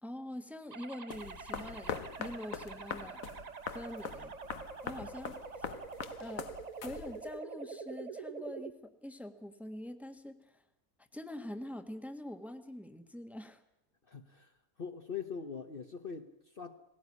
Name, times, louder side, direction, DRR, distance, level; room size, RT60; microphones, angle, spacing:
voice 1, 0.0-3.3 3.7-4.3 4.8-5.7 6.2-6.5 6.8-10.6 11.1-13.6, left 1 dB, ahead, 1.4 m, -44 dB
sound 1, 0.7-8.7, right 5 dB, 35° right, 0.9 m, -46 dB
sound 2, 1.1-7.4, left 7 dB, 75° left, 1.4 m, -43 dB
voice 2, 14.1-14.5 14.8-16.7, left 6 dB, 45° left, 1.2 m, -42 dB
20.0 x 17.5 x 9.7 m
omnidirectional pair, 1.5 m